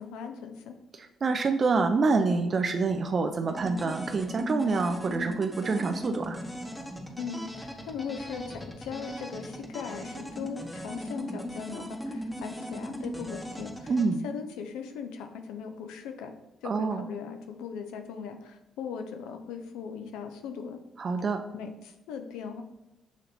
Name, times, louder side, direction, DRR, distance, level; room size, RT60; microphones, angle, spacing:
voice 1, 0.0-0.8 7.2-13.9 14.2-16.3 16.6-20.8 21.5-22.6, left 6 dB, 80° left, 6 dB, 0.4 m, -39 dB
voice 2, 0.9-6.4 13.9-14.3 16.6-17.0 21.0-21.4, right 4 dB, 50° right, 5 dB, 0.4 m, -27 dB
sound 1, 3.5-14.1, equal, 10° left, 0.9 m, -38 dB
7.0 x 2.8 x 2.6 m, 0.97 s
hypercardioid pair, 50°, 0 cm